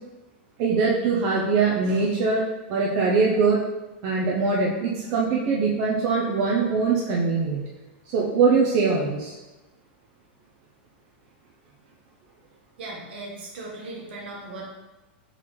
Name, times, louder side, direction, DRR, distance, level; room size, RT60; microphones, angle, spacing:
voice 1, 0.6-3.6 4.0-7.6 8.1-9.4, right 4 dB, 45° right, -4 dB, 0.7 m, -22 dB
voice 2, 12.8-14.7, right 2 dB, 70° right, -1 dB, 1.3 m, -37 dB
4.3 x 4.0 x 3.1 m, 1.1 s
supercardioid pair, 135°, 6 cm